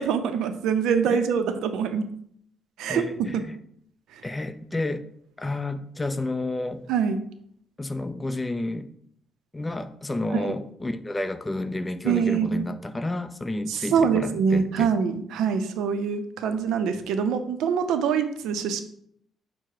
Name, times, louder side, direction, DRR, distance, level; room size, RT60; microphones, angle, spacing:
voice 1, 0.0-2.1 2.8-3.1 3.3-3.4 6.9-7.2 10.3-10.5 12.0-12.6 13.7-18.8, right 6 dB, 85° right, 9 dB, 0.4 m, -24 dB
voice 2, 2.9-3.6 4.2-5.0 5.4-6.8 7.8-8.9 9.5-14.9, left 2 dB, 15° left, 11 dB, 0.4 m, -30 dB
5.7 x 2.0 x 4.6 m, 0.69 s
cardioid pair, 90°, 0 cm